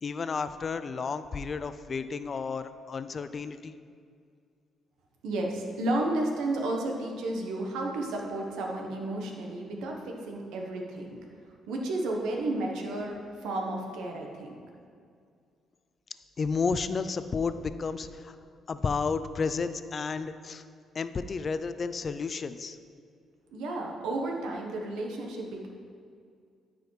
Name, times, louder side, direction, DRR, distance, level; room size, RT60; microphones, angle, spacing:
voice 1, 0.0-3.8 16.4-18.4 18.7-20.6 20.9-22.8, left 5 dB, 40° left, 12 dB, 0.4 m, -32 dB
voice 2, 5.2-11.1 11.7-13.2 13.4-14.6 23.5-25.7, right 2 dB, 90° right, 1 dB, 1.1 m, -32 dB
13.5 x 4.9 x 3.3 m, 2.3 s
cardioid pair, 90°, 0 cm